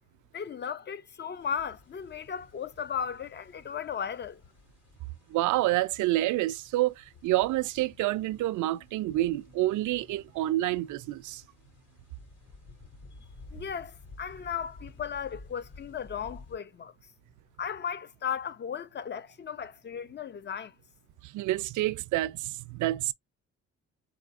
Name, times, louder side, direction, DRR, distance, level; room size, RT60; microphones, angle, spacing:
voice 1, 0.3-4.4 13.5-16.9 17.6-20.7, left 7 dB, 35° left, 0.5 m, -36 dB
sound 1, 1.4-16.6, left 3 dB, 55° left, 3.1 m, -53 dB
voice 2, 5.3-11.4 21.2-23.1, right 16 dB, 75° right, 0.4 m, -28 dB
4.3 x 2.7 x 2.4 m
cardioid pair, 90°, 30 cm